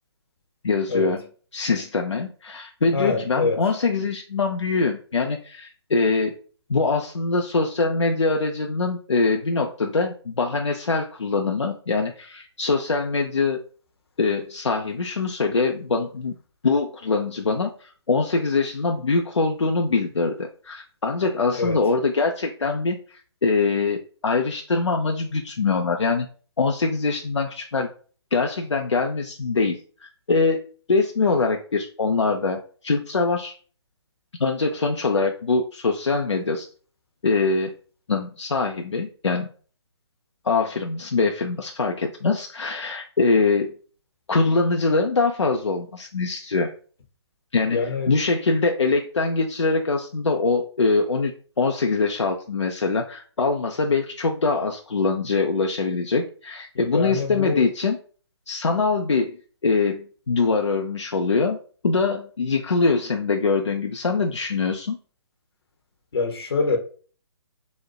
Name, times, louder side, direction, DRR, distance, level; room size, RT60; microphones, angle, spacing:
voice 1, 0.6-1.2 1.5-6.3 6.7-13.6 14.2-16.3 16.6-26.3 26.6-27.9 28.3-30.6 30.9-33.5 34.4-36.7 37.2-37.7 38.1-39.5 40.4-43.7 44.3-46.7 47.5-47.8 48.1-51.3 51.6-58.0 58.5-59.4 59.6-61.6 61.8-65.0, left 4 dB, 85° left, 0.4 m, -23 dB
voice 2, 2.9-3.6 21.5-21.8 47.7-48.1 56.7-57.7 66.1-66.8, left 4 dB, 60° left, 0.8 m, -25 dB
4.0 x 2.1 x 2.3 m
figure-of-eight pair, 140°, 15 cm